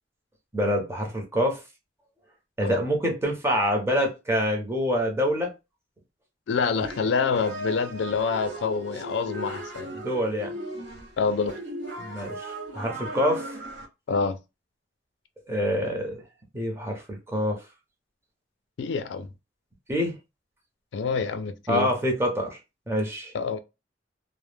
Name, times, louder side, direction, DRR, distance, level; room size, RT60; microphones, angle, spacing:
voice 1, 0.5-1.6 2.6-5.5 9.9-10.5 12.0-13.5 15.5-16.2 16.5-17.6 19.9-20.1 21.7-22.6 22.9-23.3, equal, 15° right, 0.6 m, -26 dB
voice 2, 6.5-10.0 11.2-11.6 14.1-14.4 18.8-19.3 20.9-21.9 23.3-23.6, left 5 dB, 80° left, 0.4 m, -27 dB
sound 1, 6.8-13.9, right 1 dB, 75° right, 0.8 m, -37 dB
2.2 x 2.0 x 3.2 m
head